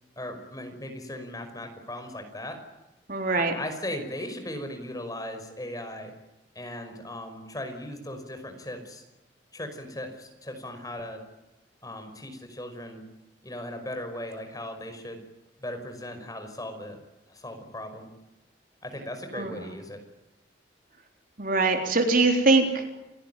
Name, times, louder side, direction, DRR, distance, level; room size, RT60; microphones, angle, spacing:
voice 1, 0.2-2.6 3.3-6.1 6.6-9.0 9.5-11.2 11.8-13.0 13.4-15.2 15.6-17.0 17.3-18.1 18.8-20.0, left 1 dB, 20° left, 6 dB, 5.4 m, -38 dB
voice 2, 3.1-3.5 19.3-19.5 21.4-22.9, right 3 dB, 50° right, 4 dB, 3.8 m, -22 dB
29.0 x 18.0 x 9.2 m, 0.99 s
head